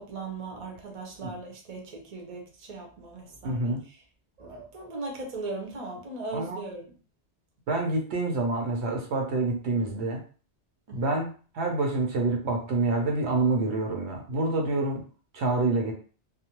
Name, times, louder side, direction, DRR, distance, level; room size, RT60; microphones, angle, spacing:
voice 1, 0.0-4.0 4.4-6.9 10.9-11.0, right 3 dB, 40° right, 0 dB, 0.7 m, -38 dB
voice 2, 3.4-3.8 6.3-6.6 7.7-10.2 10.9-15.0 15.3-15.9, right 2 dB, 70° right, 1 dB, 0.9 m, -27 dB
2.4 x 2.0 x 2.8 m, 0.39 s
omnidirectional pair, 1.2 m